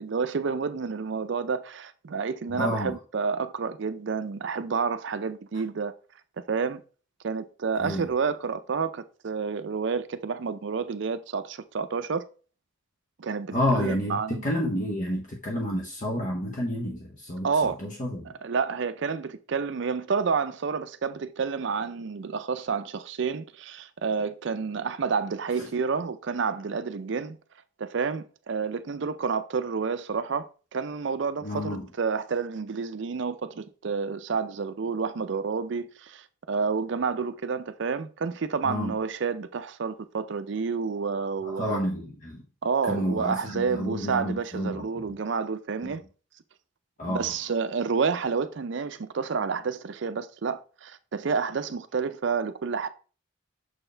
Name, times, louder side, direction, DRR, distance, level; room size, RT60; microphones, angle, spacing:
voice 1, 0.0-5.9 6.5-6.8 7.2-12.2 13.2-14.4 17.4-17.8 18.4-27.4 27.8-30.5 30.7-41.8 42.6-46.0 47.1-52.9, right 5 dB, 55° right, 0.4 m, -29 dB
voice 2, 2.5-2.9 7.8-8.0 13.5-18.3 25.5-25.7 31.4-31.9 38.6-39.0 41.4-42.4 42.8-45.2 47.0-47.3, left 1 dB, 35° left, 0.8 m, -30 dB
6.4 x 4.5 x 3.3 m
head